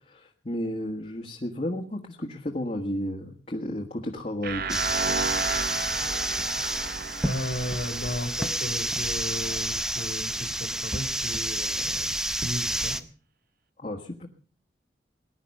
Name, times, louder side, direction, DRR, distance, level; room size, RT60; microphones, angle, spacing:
voice 1, 0.1-4.8 13.8-14.3, left 1 dB, 40° left, 0 dB, 1.6 m, -33 dB
sound 1, 4.4-9.3, right 5 dB, 55° right, 1.0 m, -33 dB
sound 2, 4.7-13.0, right 1 dB, 5° right, 0.6 m, -29 dB
voice 2, 7.2-12.1 12.4-13.0, equal, 70° left, 6 dB, 2.7 m, -35 dB
19.5 x 11.0 x 5.4 m, 0.43 s
head